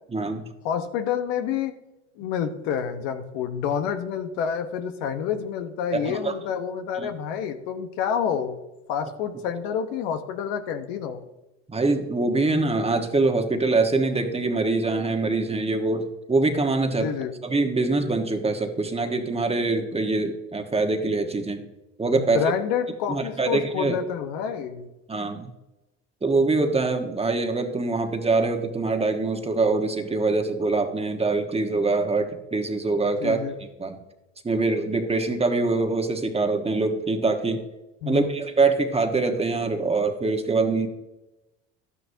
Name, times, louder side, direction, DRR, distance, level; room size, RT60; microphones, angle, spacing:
voice 1, 0.1-0.5 5.9-6.3 7.0-7.1 11.7-17.1 17.4-21.6 22.0-22.5 23.1-24.0 25.1-25.5 26.2-33.4 33.8-34.0 34.4-37.6 38.1-40.9, right 3 dB, 15° right, 5 dB, 1.3 m, -24 dB
voice 2, 0.6-1.7 2.2-8.6 8.9-11.2 17.0-17.3 22.2-24.9 33.2-33.6 38.0-38.3, left 8 dB, 75° left, 7 dB, 1.1 m, -28 dB
12.0 x 9.7 x 2.8 m, 0.99 s
supercardioid pair, 85°, 34 cm